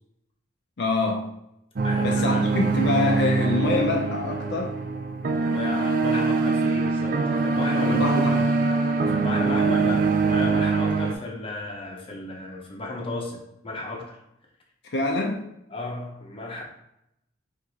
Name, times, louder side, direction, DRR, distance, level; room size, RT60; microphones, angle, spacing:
voice 1, 0.8-1.3 2.0-4.8 7.8-8.5 14.9-15.5, left 3 dB, 60° left, 0.5 m, -25 dB
voice 2, 1.8-2.6 5.4-8.0 9.1-14.2 15.7-16.6, left 2 dB, 30° left, 0.8 m, -33 dB
sound 1, 1.8-11.1, right 4 dB, 50° right, 0.4 m, -23 dB
4.6 x 2.6 x 4.0 m
head